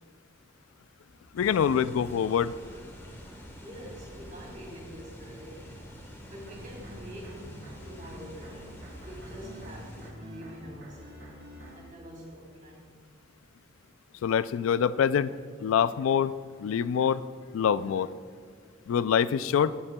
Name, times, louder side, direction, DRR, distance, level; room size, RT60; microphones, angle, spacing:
voice 1, 1.3-2.5 14.2-15.3 15.6-16.3 16.6-17.2 17.5-18.1 18.9-19.7, left 8 dB, 85° left, 16 dB, 0.3 m, -25 dB
sound 1, 1.3-10.1, equal, 15° left, 1.2 m, -47 dB
voice 2, 3.6-5.8 6.3-7.6 7.8-11.5 11.7-13.0, equal, 40° right, -2 dB, 2.4 m, -46 dB
sound 2, 6.5-11.8, equal, 55° right, 1.7 m, -47 dB
15.5 x 8.6 x 2.2 m, 2.1 s
head